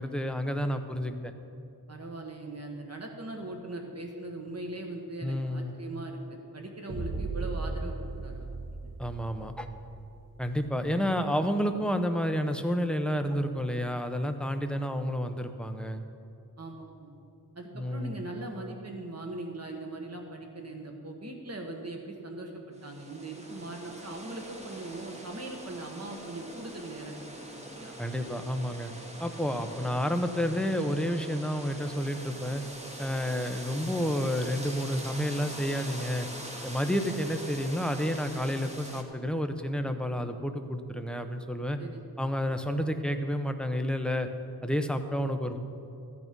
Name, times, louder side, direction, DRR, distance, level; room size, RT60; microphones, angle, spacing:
voice 1, 0.0-1.3 5.2-5.7 9.0-9.7 10.4-16.0 17.7-18.2 28.0-28.9 29.2-32.6 33.0-36.3 36.6-41.8 42.2-44.3 44.6-45.6, equal, ahead, 6 dB, 0.8 m, -30 dB
voice 2, 1.9-8.5 8.8-8.9 16.6-17.1 17.5-28.0 41.8-42.0, right 2 dB, 40° right, 2 dB, 1.7 m, -40 dB
sound 1, 6.9-10.9, right 3 dB, 65° right, 2.5 m, -37 dB
sound 2, 22.8-39.0, right 1 dB, 15° right, 1.3 m, -43 dB
14.0 x 8.7 x 5.3 m, 2.6 s
wide cardioid pair, 90°, 38 cm